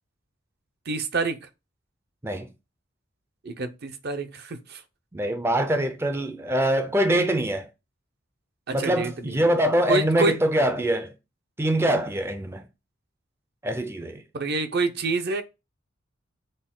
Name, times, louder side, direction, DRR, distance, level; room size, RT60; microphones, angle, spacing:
voice 1, 0.9-1.5 3.4-4.8 8.7-9.5 9.9-10.4 14.3-15.4, right 3 dB, 55° right, 0.6 m, -27 dB
voice 2, 5.1-7.7 8.7-11.1 11.6-12.6 13.6-14.2, right 1 dB, 15° right, 0.4 m, -24 dB
6.3 x 2.2 x 3.7 m
head